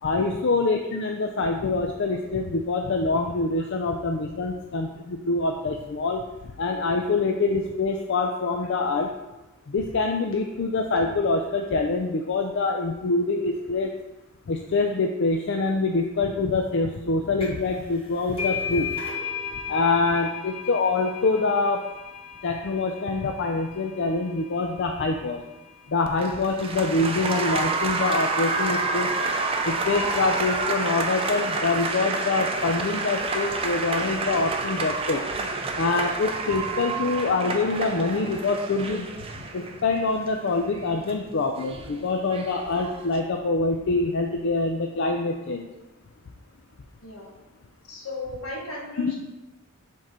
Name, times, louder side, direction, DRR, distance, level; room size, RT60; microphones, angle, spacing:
voice 1, 0.0-6.2 6.6-9.1 9.7-13.9 14.5-18.9 19.7-21.8 22.4-25.4 25.9-29.1 29.6-35.2 35.8-39.1 39.5-45.6 49.0-49.1, left 3 dB, 60° left, 3 dB, 0.4 m, -25 dB
sound 1, 17.4-17.7 18.0-25.3, left 6 dB, 25° left, 1.5 m, -35 dB
Applause, 26.0-43.2, right 3 dB, 25° right, 0.5 m, -29 dB
voice 2, 47.0-47.3 47.9-49.1, left 2 dB, 80° left, -2 dB, 1.6 m, -35 dB
7.6 x 3.7 x 4.2 m, 1.0 s
head